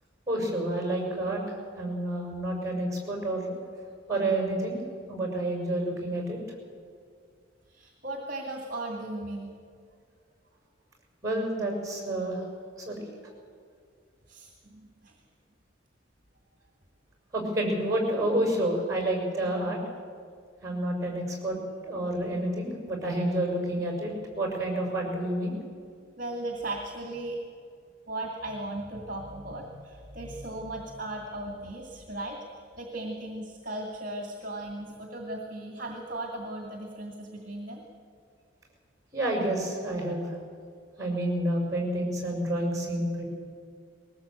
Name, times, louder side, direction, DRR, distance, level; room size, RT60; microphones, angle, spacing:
voice 1, 0.3-3.5 4.1-4.8 5.1-6.4 11.2-12.4 12.9-13.0 17.3-19.8 20.6-21.6 21.8-25.6 39.1-40.3 41.0-43.2, right 1 dB, 15° right, 1 dB, 6.1 m, -29 dB
voice 2, 7.7-9.5 14.3-15.1 26.2-27.4 28.1-37.8, right 1 dB, 40° right, 1 dB, 2.3 m, -37 dB
21.0 x 18.5 x 8.3 m, 2.2 s
head